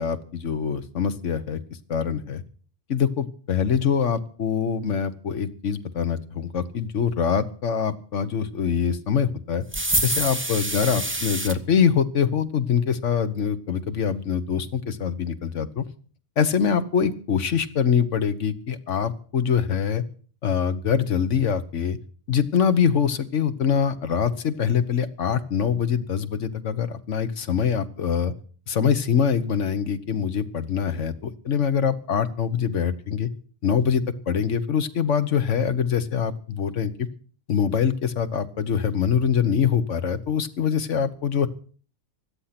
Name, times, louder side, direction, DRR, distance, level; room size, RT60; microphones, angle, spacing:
voice 1, 0.0-1.6 1.9-2.4 2.9-9.6 10.0-15.8 16.4-20.0 20.4-22.0 22.3-28.3 28.7-33.3 33.6-36.9 37.5-41.5, left 7 dB, 70° left, 11 dB, 1.5 m, -24 dB
sound 1, 9.7-11.6, right 1 dB, 10° right, 0.9 m, -26 dB
16.5 x 12.0 x 5.9 m, 0.43 s
omnidirectional pair, 1.3 m